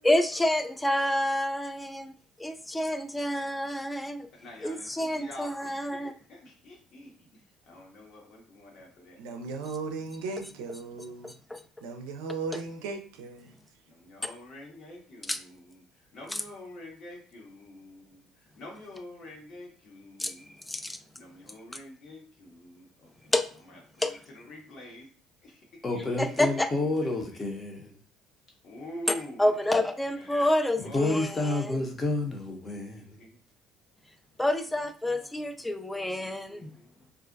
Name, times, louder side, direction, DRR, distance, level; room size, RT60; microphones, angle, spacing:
voice 1, 0.0-2.1 2.4-4.3 4.6-6.1 11.2-11.6 15.3-15.4 20.2-20.3 20.7-21.0 23.3-23.5 24.0-24.1 26.2-26.7 29.4-31.8 34.4-36.7, left 1 dB, 10° left, 0.3 m, -28 dB
voice 2, 4.3-9.2 13.8-20.6 21.0-25.1 25.4-27.4 28.6-29.6 30.1-30.4 30.7-31.7 33.2-33.4 34.7-37.1, left 1 dB, 60° left, 1.1 m, -47 dB
voice 3, 9.2-11.3 11.8-13.5, right 4 dB, 85° right, 0.4 m, -36 dB
voice 4, 25.8-28.0 30.8-33.2, left 2 dB, 30° left, 0.7 m, -30 dB
2.4 x 2.1 x 2.5 m
supercardioid pair, 70°, 0 cm